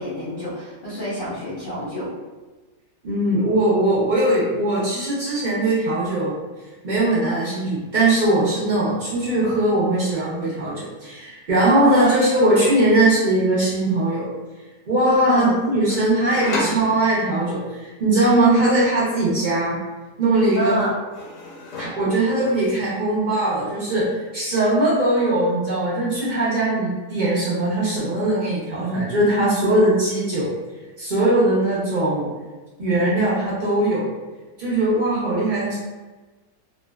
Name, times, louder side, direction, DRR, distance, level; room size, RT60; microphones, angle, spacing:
voice 1, 0.0-2.1 11.7-12.1 15.2-15.6 20.5-21.0, left 1 dB, 45° left, -10 dB, 0.7 m, -27 dB
voice 2, 3.0-6.4 6.8-14.3 14.9-19.8 20.2-20.8 21.8-30.5 31.0-32.3 32.8-34.0 34.6-35.8, right 1 dB, 50° right, -8 dB, 0.6 m, -20 dB
sound 1, 9.3-9.5 9.7-10.5 11.5-12.9 15.9-17.5 19.7-20.3 20.6-22.3, left 2 dB, 85° left, 1.1 m, -34 dB
2.6 x 2.1 x 2.2 m, 1.2 s
omnidirectional pair, 1.7 m